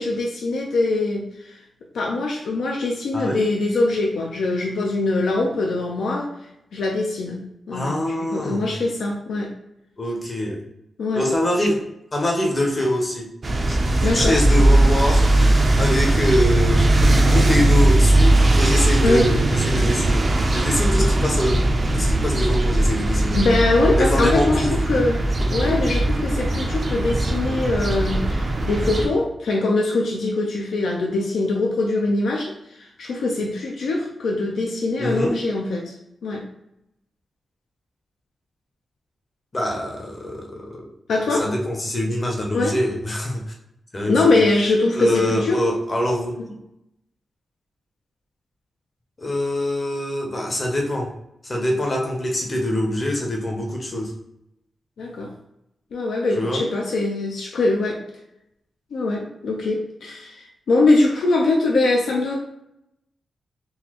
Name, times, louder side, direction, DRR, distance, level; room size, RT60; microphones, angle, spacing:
voice 1, 0.0-1.6 1.9-6.3 6.7-7.4 7.7-7.9 8.2-9.5 11.0-11.2 14.0-14.4 19.0-19.3 23.3-25.2 25.5-35.9 36.2-36.4 41.1-41.5 42.5-42.7 44.1-45.6 55.0-55.3 55.9-58.0 58.9-62.4, left 2 dB, 75° left, -1 dB, 0.5 m, -22 dB
voice 2, 3.1-3.5 7.7-8.7 10.0-10.7 11.1-11.9 12.1-13.3 13.7-20.3 20.5-21.6 21.9-23.4 23.9-24.8 25.4-25.8 35.0-35.4 39.5-40.8 41.3-43.4 43.9-44.4 45.0-46.6 49.2-51.1 51.4-54.1 56.3-56.6, left 1 dB, 20° left, 0 dB, 0.7 m, -24 dB
sound 1, 13.4-29.1, right 1 dB, 30° right, 0.4 m, -19 dB
3.9 x 2.5 x 2.9 m, 0.83 s
wide cardioid pair, 175°, 0 cm